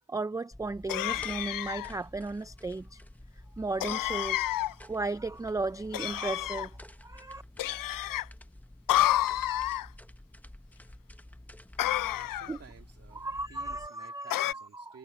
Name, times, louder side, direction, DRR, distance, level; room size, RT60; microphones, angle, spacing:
voice 1, 0.1-3.0 3.6-7.4 12.5-12.6 13.1-15.0, right 3 dB, 10° right, 0.3 m, -35 dB
sound 1, 0.5-13.9, left 1 dB, 5° left, 0.7 m, -50 dB
sound 2, 0.9-1.9 3.8-4.7 5.9-6.7 7.6-8.3 8.9-9.9 11.8-12.6 14.3-14.5, left 14 dB, 85° left, 0.5 m, -29 dB
voice 2, 12.1-15.0, right 6 dB, 50° right, 2.7 m, -54 dB
wide cardioid pair, 175°, 32 cm